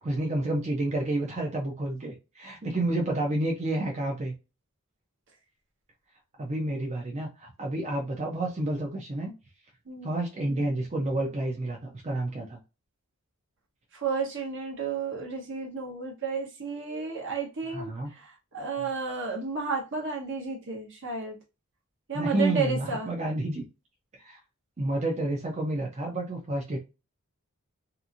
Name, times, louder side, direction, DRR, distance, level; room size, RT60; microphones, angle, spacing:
voice 1, 0.0-4.3 6.4-9.3 10.0-12.6 17.7-18.1 22.1-23.7 24.1-24.4 24.8-26.8, right 1 dB, 30° right, 0.5 m, -30 dB
voice 2, 9.9-10.2 13.9-21.4 22.1-23.1, right 4 dB, 60° right, 1.0 m, -32 dB
2.8 x 2.6 x 2.4 m
head